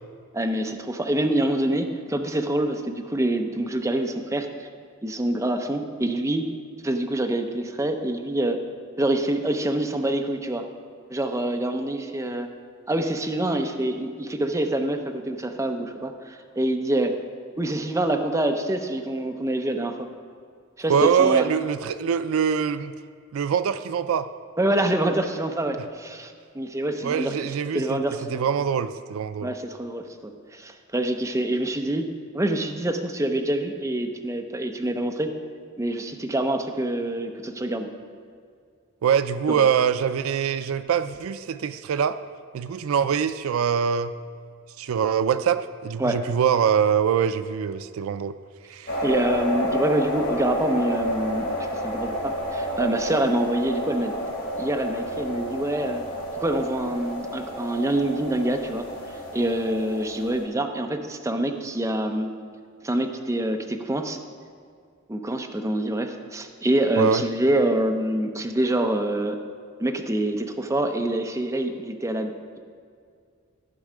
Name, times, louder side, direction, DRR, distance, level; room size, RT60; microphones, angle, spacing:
voice 1, 0.3-4.7 5.0-6.5 6.8-8.6 9.0-10.6 11.1-12.5 12.9-17.1 17.6-20.1 20.8-21.5 24.6-27.3 27.7-28.4 29.4-32.1 32.3-35.3 35.8-37.9 39.5-39.7 46.0-46.2 49.0-54.1 54.6-56.0 56.4-58.8 59.3-62.3 62.8-64.2 65.1-69.4 69.8-72.3, right 1 dB, 15° right, 4 dB, 0.6 m, -26 dB
voice 2, 20.9-22.9 23.3-24.3 27.0-29.5 39.0-42.2 42.5-44.1 44.8-48.3 48.7-49.0 67.0-67.2, right 7 dB, 80° right, 12 dB, 0.4 m, -23 dB
sound 1, 48.9-60.4, equal, 45° left, 2.1 m, -30 dB
14.0 x 5.4 x 4.9 m, 2.2 s
head